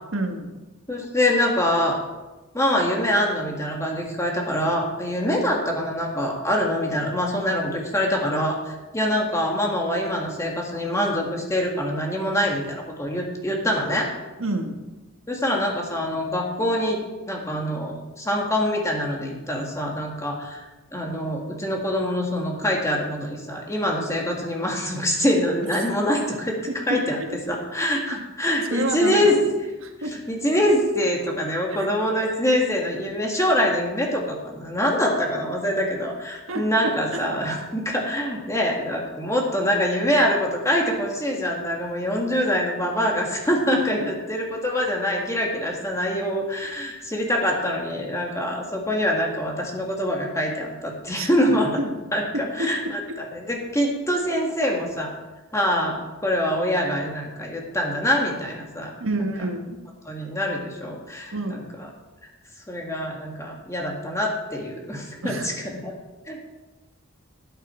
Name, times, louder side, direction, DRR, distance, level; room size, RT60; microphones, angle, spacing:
voice 1, 0.1-0.5 14.4-14.8 27.2-27.3 28.7-29.4 29.8-30.1 31.7-31.9 36.5-36.6 37.1-37.3 44.0-44.1 51.1-51.3 51.8-51.9 52.3-52.7 59.0-59.8 61.3-61.7 65.2-65.5, right 2 dB, 75° right, 4 dB, 1.4 m, -28 dB
voice 2, 0.9-2.0 2.5-14.1 15.3-20.6 20.9-26.6 26.9-27.2 27.5-29.4 30.3-51.8 52.1-55.1 55.5-58.9 60.1-61.9 62.7-65.9 66.3-66.4, equal, 15° left, 0 dB, 1.8 m, -24 dB
12.5 x 9.2 x 4.4 m, 1.1 s
head